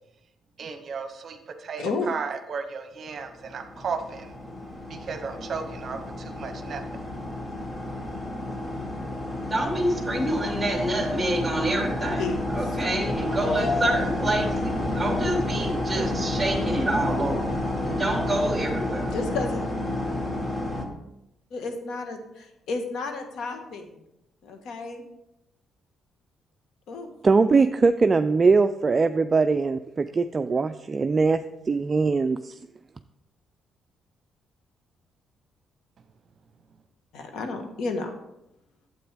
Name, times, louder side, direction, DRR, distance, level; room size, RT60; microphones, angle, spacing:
voice 1, 0.6-4.3 4.9-6.8, right 5 dB, 55° right, 7 dB, 0.8 m, -34 dB
voice 2, 1.8-2.1 12.2-12.4 13.5-14.0 19.1-19.6 21.5-23.9 24.4-25.0 26.9-27.1 37.1-38.1, left 3 dB, 75° left, 5 dB, 1.3 m, -31 dB
sound 1, 3.3-20.8, left 1 dB, 30° left, 1.3 m, -30 dB
voice 3, 9.5-12.2 12.5-19.1, right 1 dB, 5° right, -2 dB, 2.6 m, -27 dB
voice 4, 27.2-32.6, right 4 dB, 35° right, 8 dB, 0.3 m, -21 dB
9.0 x 7.9 x 3.4 m, 0.85 s
cardioid pair, 90°, 0 cm